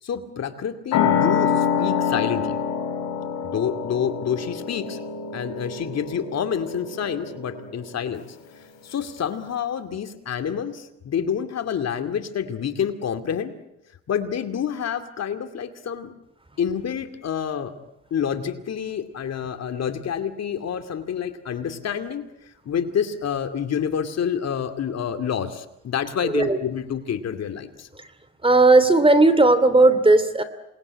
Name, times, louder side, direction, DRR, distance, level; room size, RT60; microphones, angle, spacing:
voice 1, 0.0-2.6 3.4-5.0 5.3-8.2 8.8-13.5 14.1-16.1 16.6-17.7 18.1-27.9, left 8 dB, 60° left, 8 dB, 2.4 m, -28 dB
sound 1, 0.9-8.1, left 7 dB, 90° left, 4.2 m, -26 dB
voice 2, 26.2-26.6 27.9-28.1 28.4-30.4, right 2 dB, 20° right, 13 dB, 2.7 m, -16 dB
27.5 x 20.5 x 9.7 m, 0.91 s
cardioid pair, 90°, 30 cm